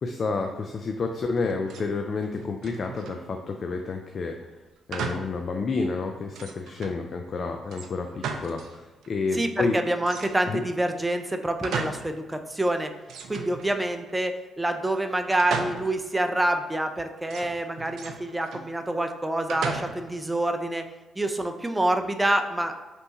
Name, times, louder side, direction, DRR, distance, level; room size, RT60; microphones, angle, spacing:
voice 1, 0.0-4.3 4.9-9.8 10.5-10.6, left 4 dB, 50° left, 4 dB, 0.3 m, -29 dB
sound 1, 1.4-1.9 2.2-3.3 4.9-5.4 5.8-5.9 6.3-7.0 7.7-8.8 9.0-9.1 10.0-10.7 11.2-12.2 12.5-12.6 13.1-14.1 15.4-16.1 17.3-18.7 19.5-20.2, right 5 dB, 75° right, 0.4 m, -36 dB
voice 2, 9.3-12.9 13.3-14.3 14.6-20.8 21.2-22.7, right 1 dB, 15° right, 6 dB, 0.5 m, -27 dB
3.2 x 3.0 x 4.0 m, 1.2 s
supercardioid pair, 55°, 0 cm